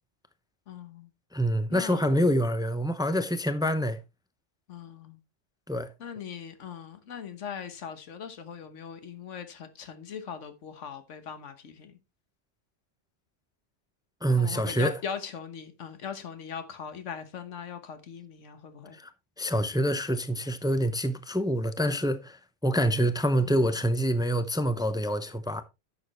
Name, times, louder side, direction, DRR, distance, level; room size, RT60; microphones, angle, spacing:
voice 1, 0.7-1.1 1.7-2.1 4.7-5.2 6.0-12.0 14.4-19.0 23.4-23.8, left 7 dB, 90° left, 1.4 m, -40 dB
voice 2, 1.3-4.0 5.7-5.9 14.2-14.9 18.9-19.1 19.4-25.6, equal, 5° right, 0.5 m, -26 dB
11.0 x 7.1 x 3.0 m
omnidirectional pair, 1.2 m